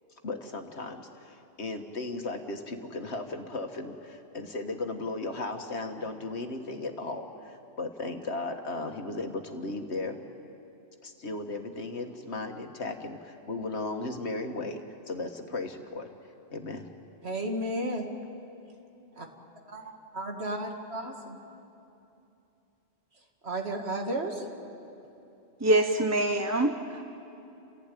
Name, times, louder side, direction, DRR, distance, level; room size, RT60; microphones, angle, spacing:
voice 1, 0.2-10.2 11.0-16.1 16.5-16.9, left 2 dB, 75° left, 5 dB, 1.8 m, -36 dB
voice 2, 17.2-18.1 19.2-19.3 19.7-19.8 20.1-21.4 23.4-24.5, right 1 dB, 65° right, 2 dB, 2.4 m, -33 dB
voice 3, 25.6-27.0, right 1 dB, 15° right, 5 dB, 0.7 m, -25 dB
30.0 x 15.5 x 9.2 m, 2.8 s
omnidirectional pair, 1.1 m